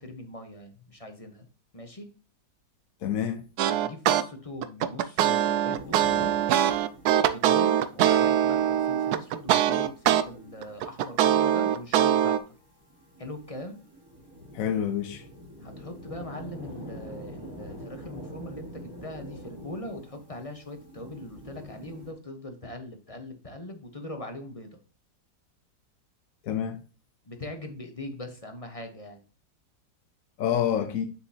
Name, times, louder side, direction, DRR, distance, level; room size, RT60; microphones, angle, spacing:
voice 1, 0.0-1.5 1.7-2.1 3.7-6.6 7.2-12.4 13.2-13.8 15.6-24.7 27.3-29.2, left 1 dB, 25° left, 0.9 m, -41 dB
voice 2, 3.0-3.4 14.5-15.2 26.4-26.8 30.4-31.1, left 9 dB, 60° left, 1.1 m, -27 dB
sound 1, 3.6-4.2 4.6-10.2 10.6-12.4, right 10 dB, 75° right, 1.1 m, -22 dB
sound 2, 5.7-22.1, equal, 15° right, 1.6 m, -46 dB
7.3 x 6.7 x 2.8 m
omnidirectional pair, 1.8 m